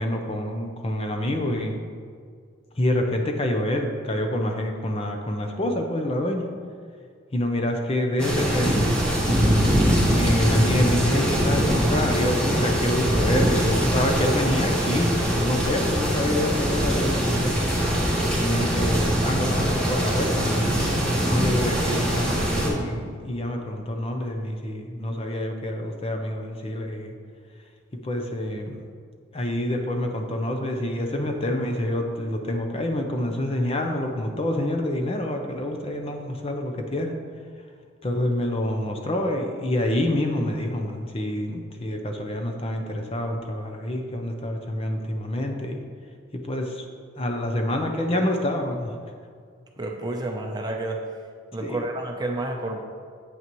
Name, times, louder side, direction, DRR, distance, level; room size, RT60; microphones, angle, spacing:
voice 1, 0.0-1.8 2.7-6.5 7.3-8.9 10.1-17.6 18.4-20.8 21.2-27.2 28.0-28.8 29.3-37.2 38.0-45.8 46.3-46.8 47.2-49.0 51.6-51.8, left 1 dB, 30° left, 3 dB, 0.6 m, -27 dB
sound 1, 8.2-22.7, equal, 5° left, 1.5 m, -22 dB
voice 2, 49.8-51.0 51.5-52.8, right 2 dB, 20° right, 1 dB, 0.6 m, -30 dB
8.6 x 8.2 x 3.1 m, 2.1 s
head